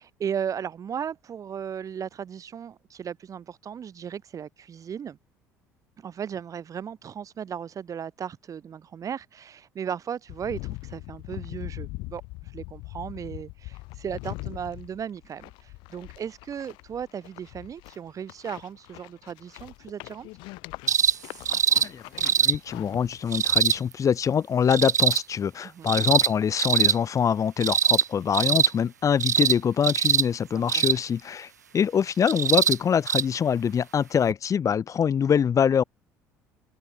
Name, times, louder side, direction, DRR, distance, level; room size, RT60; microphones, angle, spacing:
voice 1, 0.0-5.2 6.0-20.3 25.7-25.9 30.5-30.8, right 8 dB, 40° right, 3.7 m, -36 dB
sound 1, 10.3-23.8, left 23 dB, 60° left, 3.4 m, -41 dB
sound 2, 20.9-21.2 21.5-21.9 22.2-22.5 23.3-23.8 24.7-25.2 25.9-26.3 26.6-27.0 27.6-28.1 28.3-28.7 29.2-29.6 29.8-30.2 30.7-31.0 32.3-32.8 33.1-33.2 34.3-34.4, right 7 dB, 80° right, 0.8 m, -22 dB
voice 2, 21.8-35.8, left 7 dB, 35° left, 4.2 m, -24 dB
figure-of-eight pair, 55°, 9 cm